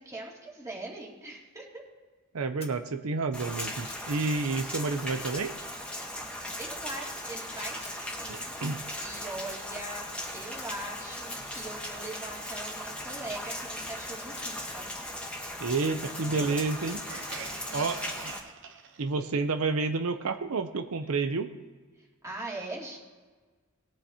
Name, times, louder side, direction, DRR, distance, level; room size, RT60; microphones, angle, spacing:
voice 1, 0.0-1.8 6.6-14.9 17.7-18.3 22.0-23.0, right 2 dB, 15° right, -3 dB, 2.6 m, -41 dB
voice 2, 2.3-5.5 8.3-8.8 15.6-17.0 17.7-18.3 19.0-21.5, right 3 dB, 85° right, 8 dB, 0.7 m, -30 dB
sound 1, 2.6-2.7 3.2-4.1 6.9-7.2 7.5-8.0 10.6-10.7 11.2-11.7 13.5-14.5 17.2-18.2 18.6-18.7, left 4 dB, 30° left, 1.8 m, -48 dB
Rain, 3.3-18.4, left 1 dB, 5° left, 1.6 m, -38 dB
sound 2, 16.1-19.1, right 4 dB, 60° right, 0.9 m, -44 dB
20.0 x 8.9 x 2.9 m, 1.4 s
head